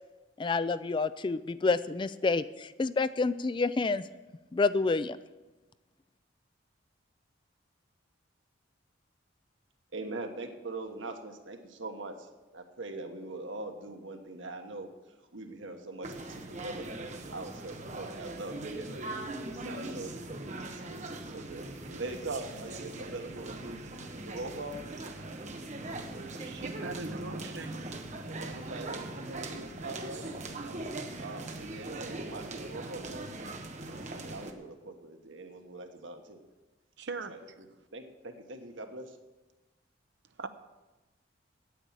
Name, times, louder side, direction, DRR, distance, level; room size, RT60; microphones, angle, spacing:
voice 1, 0.4-4.0 4.5-5.2, left 3 dB, 25° left, 14 dB, 0.3 m, -28 dB
voice 2, 9.9-16.9 17.3-19.1 19.5-20.1 20.7-23.8 24.2-24.8 28.2-33.3 33.8-36.4 37.3-37.4 37.9-39.2, right 2 dB, 85° right, 5 dB, 1.4 m, -42 dB
sound 1, 16.0-34.5, right 2 dB, 40° right, 1.0 m, -40 dB
voice 3, 26.3-27.8 37.0-37.3 40.4-40.5, right 3 dB, 65° right, 9 dB, 0.7 m, -39 dB
9.2 x 8.5 x 8.9 m, 1.1 s
head